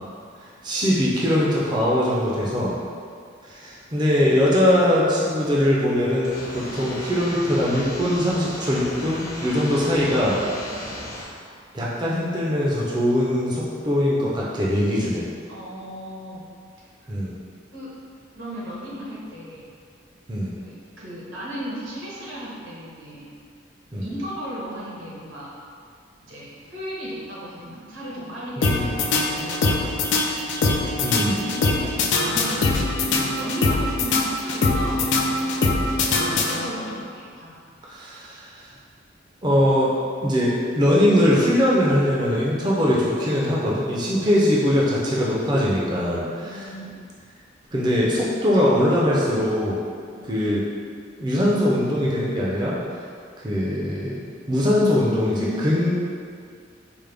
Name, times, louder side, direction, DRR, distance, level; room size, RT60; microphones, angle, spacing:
voice 1, 0.4-2.7 3.4-10.4 11.7-15.2 17.1-17.3 20.3-20.5 23.9-24.1 28.6-28.9 31.0-31.4 37.9-38.6 39.4-39.9 40.2-46.6 47.7-49.8 50.3-50.6 51.2-52.8 53.4-55.9, left 1 dB, 20° right, -6 dB, 0.5 m, -21 dB
sound 1, 6.2-11.2, left 1 dB, 50° left, 1.0 m, -36 dB
voice 2, 15.5-16.4 17.1-17.2 17.7-17.9 18.3-19.7 20.6-23.3 24.0-25.5 26.2-30.4 31.0-31.9 32.2-32.7 33.0-37.6 44.1-44.4 46.4-47.0 50.2-50.3 55.4-55.6, equal, 85° right, -7 dB, 1.2 m, -36 dB
sound 2, 28.6-36.9, left 3 dB, 70° left, 0.4 m, -23 dB
4.9 x 2.1 x 3.4 m, 2.2 s
head